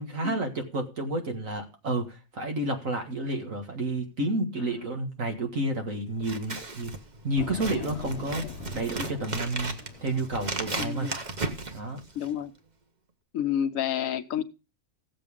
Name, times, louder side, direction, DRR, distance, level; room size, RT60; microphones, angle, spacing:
voice 1, 0.0-6.9 7.2-8.4 8.7-11.1 11.7-12.0, right 1 dB, 80° right, 2.3 m, -30 dB
Scissors, 6.2-12.4, right 3 dB, 35° right, 1.2 m, -36 dB
sound 1, 7.4-11.1, left 8 dB, 60° left, 0.9 m, -42 dB
voice 2, 10.8-11.2 12.1-12.5 13.3-14.4, left 10 dB, 85° left, 1.2 m, -30 dB
15.5 x 7.6 x 3.6 m
omnidirectional pair, 1.4 m